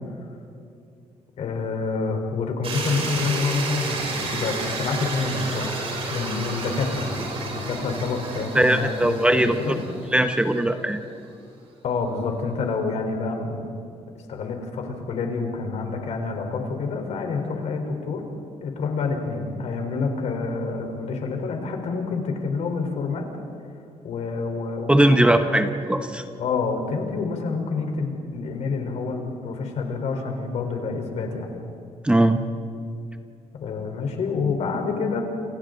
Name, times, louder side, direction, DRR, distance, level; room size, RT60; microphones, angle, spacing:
voice 1, 1.4-5.8 6.1-9.7 11.8-13.7 14.1-18.3 18.6-23.3 24.0-25.6 26.4-31.5 33.5-35.2, left 4 dB, 70° left, 3 dB, 4.0 m, -28 dB
sound 1, 2.6-10.6, right 3 dB, 55° right, 7.4 m, -31 dB
voice 2, 8.5-9.5 10.1-11.0 24.9-26.2 32.0-32.4, right 1 dB, 10° right, 7 dB, 1.0 m, -19 dB
29.5 x 28.0 x 3.9 m, 2.5 s
cardioid pair, 125°, 12 cm